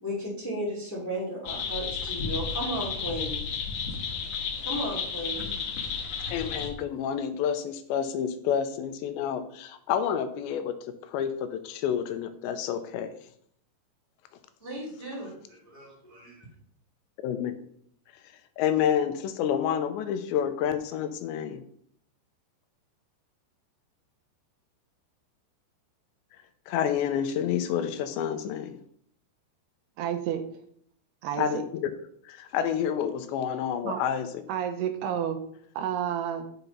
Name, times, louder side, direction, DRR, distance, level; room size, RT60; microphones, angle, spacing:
voice 1, 0.0-3.4 4.6-5.5 14.6-16.5, equal, 5° left, -4 dB, 1.2 m, -35 dB
sound 1, 1.5-6.7, left 6 dB, 65° left, 1.9 m, -32 dB
voice 2, 6.3-10.8 11.1-13.1 17.2-17.5 18.6-21.6 26.7-28.8 31.4-31.9 32.3-34.4, left 8 dB, 80° left, 9 dB, 3.0 m, -29 dB
voice 3, 30.0-30.4 31.2-31.6 33.8-34.0 34.5-35.4 35.8-36.5, right 9 dB, 75° right, 6 dB, 2.6 m, -30 dB
10.5 x 6.0 x 5.4 m, 0.64 s
omnidirectional pair, 5.2 m